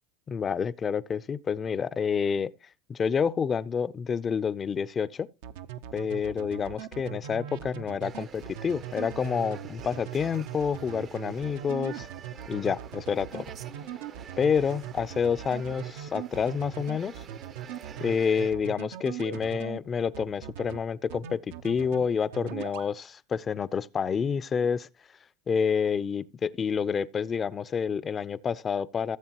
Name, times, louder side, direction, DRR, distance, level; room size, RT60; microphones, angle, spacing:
voice 1, 0.3-2.5 2.9-5.3 5.9-12.1 12.5-13.5 14.4-17.1 18.0-24.9 25.5-29.2, left 6 dB, 30° left, 0.5 m, -28 dB
sound 1, 5.4-19.8 20.1-20.8 21.1-22.0 22.3-22.9, right 10 dB, 75° right, 0.8 m, -39 dB
sound 2, 8.0-18.5, right 8 dB, 40° right, 0.6 m, -48 dB
16.0 x 7.2 x 3.0 m
supercardioid pair, 110°, 0 cm